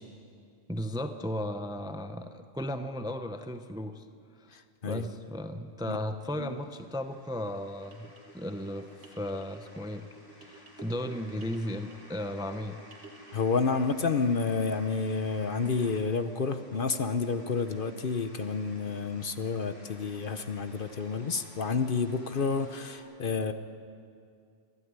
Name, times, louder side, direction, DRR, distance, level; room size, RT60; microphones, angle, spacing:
voice 1, 0.7-4.0 4.4-4.5 4.8-10.1 10.4-12.8, left 1 dB, 5° right, 8 dB, 0.6 m, -35 dB
voice 2, 4.5-5.0 5.9-6.0 6.4-6.5 13.3-23.5, left 4 dB, 50° left, 9 dB, 1.0 m, -30 dB
sound 1, 6.3-23.0, equal, 35° left, 3.8 m, -55 dB
sound 2, 7.8-14.1, right 1 dB, 65° right, 2.3 m, -53 dB
24.5 x 12.5 x 9.6 m, 2.3 s
omnidirectional pair, 1.2 m